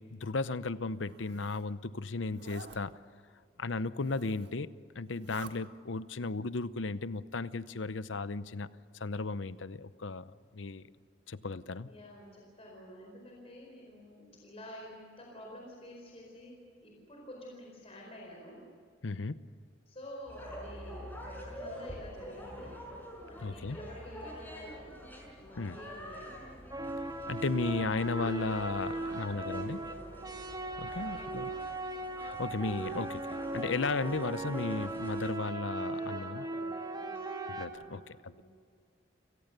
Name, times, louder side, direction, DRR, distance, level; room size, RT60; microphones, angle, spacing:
voice 1, 0.0-3.0 3.6-4.7 4.9-8.7 8.9-10.8 11.3-11.9 19.0-19.4 23.4-23.8 25.6-25.8 27.3-29.8 30.8-31.5 32.2-36.4 37.5-38.3, left 3 dB, 80° left, 15 dB, 0.8 m, -35 dB
Zipper (clothing), 0.9-1.7 2.3-2.8 3.9-4.6 5.0-5.5, right 4 dB, 65° right, 1.8 m, -51 dB
voice 2, 11.8-18.7 19.9-22.8 23.3-24.9 25.4-26.4 28.9-30.3 30.9-31.6 35.7-37.3 37.7-38.4, equal, 35° left, -1 dB, 4.6 m, -49 dB
sound 1, 20.3-35.3, equal, 10° left, 6.0 m, -47 dB
sound 2, 26.7-37.7, right 2 dB, 20° right, 1.7 m, -38 dB
30.0 x 18.0 x 6.8 m, 2.2 s
head